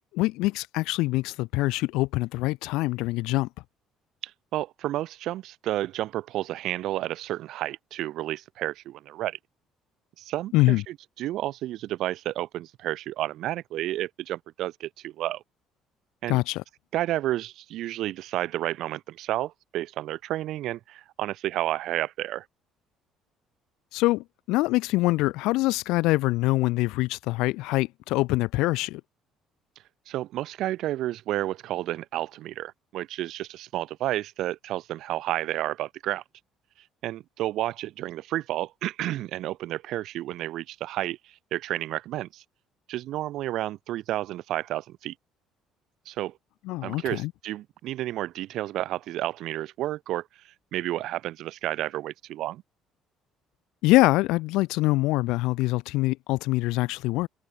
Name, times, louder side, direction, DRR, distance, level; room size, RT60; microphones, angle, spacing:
voice 1, 0.1-3.5 10.5-10.8 16.3-16.6 23.9-29.0 46.6-47.3 53.8-57.3, left 20 dB, 85° left, 1.4 m, -24 dB
voice 2, 4.5-9.4 10.2-15.4 16.2-16.4 16.9-22.4 30.1-36.2 37.0-41.2 41.5-42.4 42.9-45.1 46.1-46.3 46.8-50.2 50.7-52.6, right 14 dB, 70° right, 5.6 m, -31 dB
cardioid pair, 110°, 0 cm